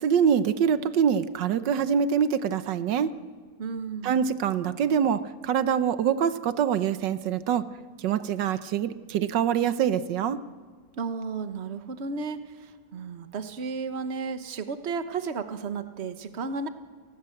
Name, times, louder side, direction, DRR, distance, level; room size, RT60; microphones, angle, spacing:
voice 1, 0.0-3.1 4.0-7.6 8.0-10.4, right 8 dB, 85° right, 12 dB, 1.6 m, -25 dB
voice 2, 3.6-4.3 11.0-16.7, right 5 dB, 40° right, 9 dB, 1.4 m, -33 dB
29.5 x 19.0 x 7.9 m, 1.5 s
omnidirectional pair, 1.9 m